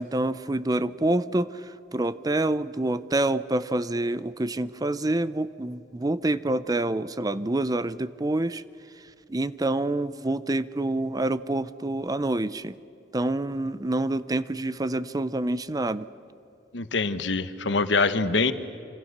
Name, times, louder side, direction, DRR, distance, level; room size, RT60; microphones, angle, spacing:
voice 1, 0.0-8.6 9.3-12.7 13.1-16.1, right 2 dB, 20° right, 15 dB, 0.6 m, -27 dB
voice 2, 16.7-18.5, left 3 dB, 85° left, 11 dB, 1.2 m, -24 dB
27.0 x 26.0 x 6.7 m, 2.4 s
head